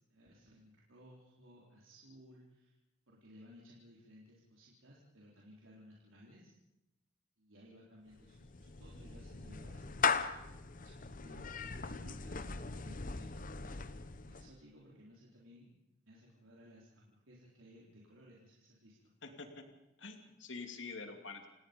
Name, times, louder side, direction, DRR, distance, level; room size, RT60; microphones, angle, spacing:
voice 1, 0.0-2.8 3.1-6.5 7.4-10.4 10.7-15.8 16.1-19.1, equal, 85° right, -4 dB, 3.8 m, -59 dB
Clapping / Meow, 8.1-14.6, left 5 dB, 45° left, 0.9 m, -39 dB
voice 2, 19.2-19.7 20.0-21.5, left 4 dB, 70° left, 5 dB, 2.6 m, -46 dB
28.0 x 18.0 x 5.3 m, 0.92 s
head